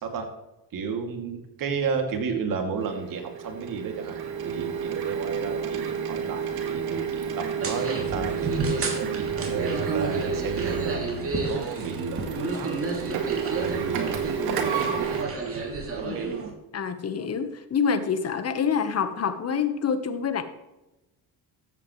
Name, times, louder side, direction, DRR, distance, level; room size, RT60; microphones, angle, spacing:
voice 1, 0.7-7.3 7.6-14.2 14.5-15.1 15.9-16.4, right 5 dB, 55° right, 3 dB, 2.7 m, -33 dB
Printer, 2.8-15.2, right 7 dB, 75° right, 2.1 m, -31 dB
sound 1, 7.6-16.5, right 3 dB, 35° right, 3.1 m, -31 dB
voice 2, 14.4-14.7 16.0-16.3 16.7-20.4, left 6 dB, 40° left, 10 dB, 1.4 m, -27 dB
13.5 x 8.5 x 3.3 m, 0.97 s
supercardioid pair, 85°, 39 cm